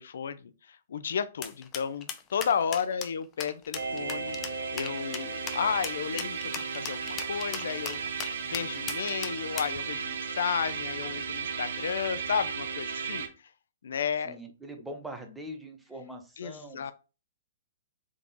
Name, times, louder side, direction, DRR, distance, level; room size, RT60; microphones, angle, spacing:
voice 1, 0.0-4.4 4.7-8.0 8.5-13.3 13.8-14.4 16.4-16.9, left 7 dB, 75° left, 0.5 m, -32 dB
sound 1, 1.4-9.8, left 8 dB, 25° left, 0.5 m, -38 dB
sound 2, 3.7-13.3, right 5 dB, 75° right, 0.8 m, -35 dB
voice 2, 14.2-16.9, right 1 dB, 5° right, 0.8 m, -42 dB
3.7 x 2.9 x 3.8 m
hypercardioid pair, 145°, 0 cm